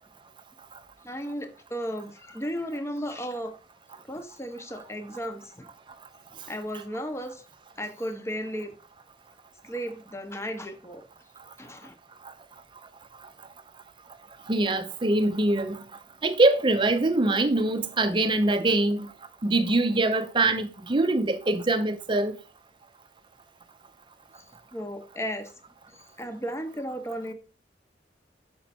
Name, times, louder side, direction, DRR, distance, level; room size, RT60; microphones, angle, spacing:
voice 1, 1.0-3.5 4.1-5.7 6.5-7.4 7.8-8.7 9.6-11.0 11.6-11.9 24.4-24.5 24.7-25.5 25.9-27.3, equal, 15° left, 0.8 m, -34 dB
voice 2, 14.5-15.8 16.2-19.1 19.4-22.4, right 2 dB, 30° right, 0.6 m, -23 dB
5.8 x 5.3 x 4.2 m
head